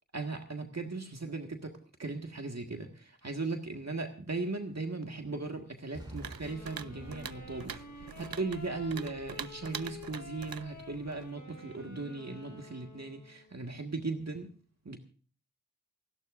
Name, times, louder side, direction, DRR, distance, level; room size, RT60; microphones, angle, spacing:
voice 1, 0.1-14.5 14.8-15.0, right 3 dB, 50° right, 4 dB, 1.7 m, -38 dB
Explosion, 5.9-9.9 10.3-10.4, equal, 10° right, 6.7 m, -51 dB
sound 1, 6.2-11.3, right 8 dB, 85° right, 0.6 m, -45 dB
Wind instrument woodwind instrument, 6.4-13.6, left 4 dB, 55° left, 1.5 m, -50 dB
28.5 x 12.0 x 2.6 m, 0.40 s
wide cardioid pair, 70°, 34 cm